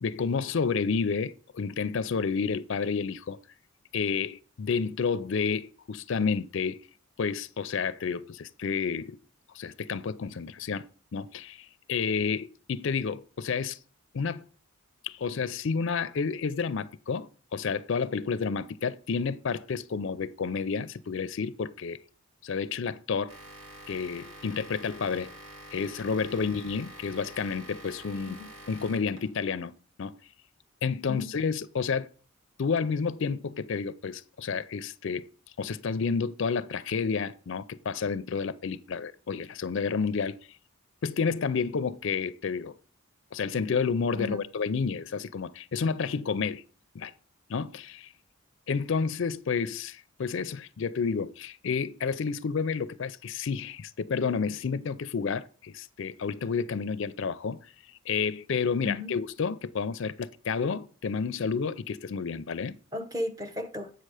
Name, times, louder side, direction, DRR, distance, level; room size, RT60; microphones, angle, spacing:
voice 1, 0.0-3.4 3.9-6.8 7.2-9.2 9.5-10.9 11.1-13.8 14.1-14.4 15.0-22.0 22.4-23.3 23.9-25.3 25.7-28.4 28.7-29.7 30.0-30.2 30.8-32.1 32.6-35.2 35.6-40.4 41.0-42.7 43.3-46.6 46.9-47.1 47.5-48.1 48.7-57.6 58.1-62.7, left 5 dB, 55° left, 0.4 m, -30 dB
sound 1, 23.3-29.5, right 1 dB, 70° right, 2.2 m, -47 dB
voice 2, 58.8-59.2 62.9-63.9, left 2 dB, 15° right, 0.8 m, -35 dB
8.0 x 6.6 x 4.8 m
head